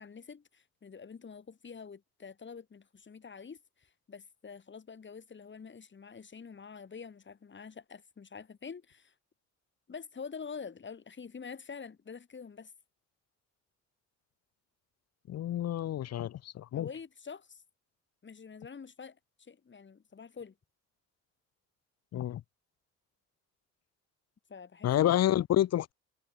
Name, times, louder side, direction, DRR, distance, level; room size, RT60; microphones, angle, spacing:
voice 1, 0.0-9.1 9.9-12.7 16.7-17.6 18.2-20.5 24.5-25.1, left 6 dB, 40° left, 5.1 m, -46 dB
voice 2, 15.3-16.9 22.1-22.4 24.8-25.9, left 12 dB, 55° left, 0.8 m, -29 dB
cardioid pair, 90°, 30 cm